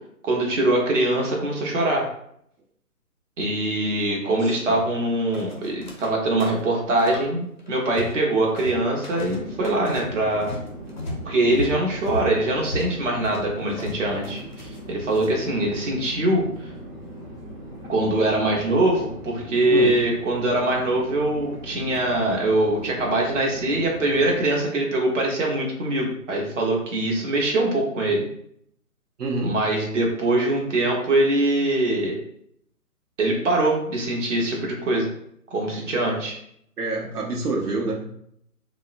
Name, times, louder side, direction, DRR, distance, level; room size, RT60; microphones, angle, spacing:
voice 1, 0.2-2.0 3.4-10.5 11.2-16.7 17.9-28.2 29.4-32.2 33.2-35.1 35.5-36.4, right 1 dB, 55° right, -1 dB, 0.9 m, -23 dB
voice 2, 4.2-4.8 19.7-19.9 29.2-29.5 36.8-38.0, right 2 dB, 90° right, -2 dB, 0.9 m, -27 dB
sound 1, 5.3-6.1 6.4-7.3 7.6-8.3 8.6-15.3, equal, 35° left, 0.4 m, -35 dB
Chatter / Fixed-wing aircraft airplane, 9.1-24.6, equal, 25° right, 1.0 m, -39 dB
3.5 x 2.0 x 2.5 m, 0.70 s
figure-of-eight pair, 150°, 45 cm